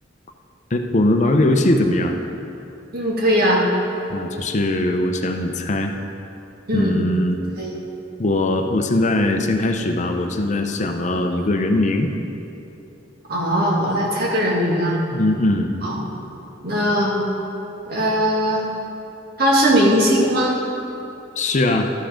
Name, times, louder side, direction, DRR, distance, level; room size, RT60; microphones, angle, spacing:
voice 1, 0.7-2.2 4.1-5.9 6.7-7.4 8.2-12.1 15.1-15.7 21.4-21.9, left 1 dB, 40° left, 4 dB, 0.6 m, -20 dB
voice 2, 2.9-3.6 6.7-7.0 7.6-7.7 13.3-15.0 15.8-16.0 16.6-17.2 17.9-18.6 19.4-20.6, equal, 55° right, -3 dB, 1.8 m, -19 dB
13.0 x 5.6 x 5.0 m, 2.8 s
head